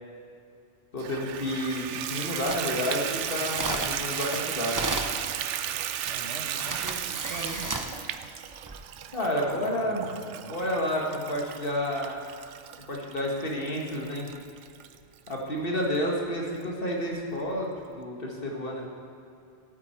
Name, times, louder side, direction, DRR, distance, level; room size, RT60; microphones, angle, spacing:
voice 1, 0.9-4.8 9.1-10.1 10.5-12.2 12.9-14.3 15.3-18.8, equal, 50° left, -1 dB, 1.9 m, -30 dB
Water tap faucet / Bathtub (filling or washing), 1.0-15.4 15.9-16.0 16.5-16.6 16.9-17.0, right 10 dB, 90° right, 0.9 m, -35 dB
sound 1, 2.4-5.2 6.1-6.2 6.5-8.0 8.5-8.8, right 2 dB, 20° right, 0.7 m, -34 dB
voice 2, 6.0-7.8 9.5-10.8, right 3 dB, 70° right, 4 dB, 1.3 m, -42 dB
17.5 x 8.3 x 4.4 m, 2.6 s
omnidirectional pair, 1.2 m